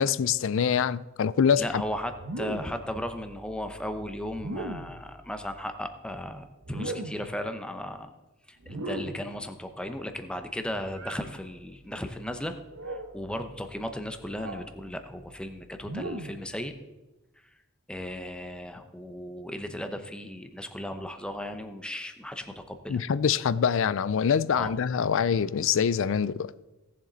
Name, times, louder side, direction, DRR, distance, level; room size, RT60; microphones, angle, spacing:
voice 1, 0.0-1.8 22.9-26.5, left 7 dB, 65° left, 0.4 m, -25 dB
voice 2, 1.6-8.1 8.5-12.6 13.1-16.7 17.9-23.0 24.5-24.7, left 1 dB, 5° left, 0.8 m, -36 dB
sound 1, 2.2-2.9 4.3-5.0 6.6-7.4 8.6-9.3 10.9-11.3 12.7-13.2 14.3-14.7 15.8-16.5, right 1 dB, 75° right, 1.1 m, -37 dB
17.0 x 7.3 x 4.0 m
head